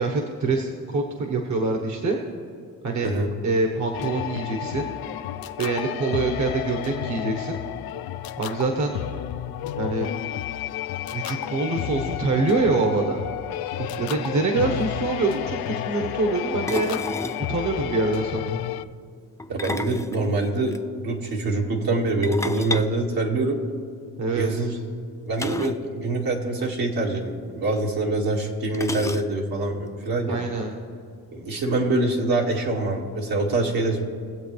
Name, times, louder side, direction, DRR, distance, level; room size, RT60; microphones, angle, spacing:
voice 1, 0.0-2.2 2.8-3.1 3.4-4.9 5.6-7.6 8.4-9.0 9.8-10.1 11.1-13.2 14.0-17.0 17.5-18.6 24.2-24.7 30.3-30.7, right 3 dB, 50° right, 3 dB, 1.4 m, -25 dB
sound 1, 3.9-18.8, left 12 dB, 80° left, 0.5 m, -31 dB
sound 2, 14.4-14.5 14.6-14.9 16.7-17.5 19.4-20.8 22.2-23.9 25.4-25.9 26.1-26.2 26.6-26.7 27.7-27.8 28.7-29.6, left 2 dB, 10° left, 0.5 m, -32 dB
voice 2, 19.5-23.6 24.3-24.8 25.2-30.4 31.3-34.0, right 2 dB, 70° right, -1 dB, 2.1 m, -25 dB
22.0 x 7.9 x 3.3 m, 2.3 s
cardioid pair, 85°, 36 cm